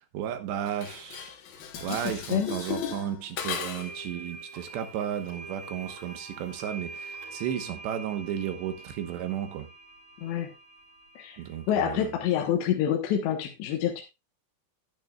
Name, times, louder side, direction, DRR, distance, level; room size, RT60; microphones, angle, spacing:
voice 1, 0.1-1.3 1.8-9.7 11.4-12.1, right 10 dB, 80° right, 3.5 m, -33 dB
Dishes pots and pans, 0.7-4.0, left 8 dB, 65° left, 3.1 m, -36 dB
sound 1, 3.5-12.4, right 3 dB, 55° right, 6.0 m, -45 dB
voice 2, 10.2-10.5 11.2-11.4 11.7-14.0, left 10 dB, 80° left, 3.6 m, -27 dB
12.0 x 11.0 x 2.4 m
omnidirectional pair, 4.9 m